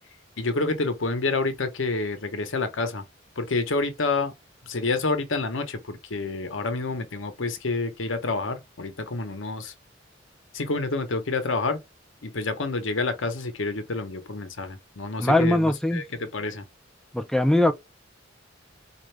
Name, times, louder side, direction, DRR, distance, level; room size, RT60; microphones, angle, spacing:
voice 1, 0.4-3.0 3.4-4.3 4.7-9.7 10.5-11.8 12.2-16.6, left 3 dB, 80° left, 0.9 m, -28 dB
voice 2, 15.2-16.0 17.1-17.7, left 1 dB, ahead, 0.4 m, -21 dB
4.4 x 2.5 x 3.2 m
head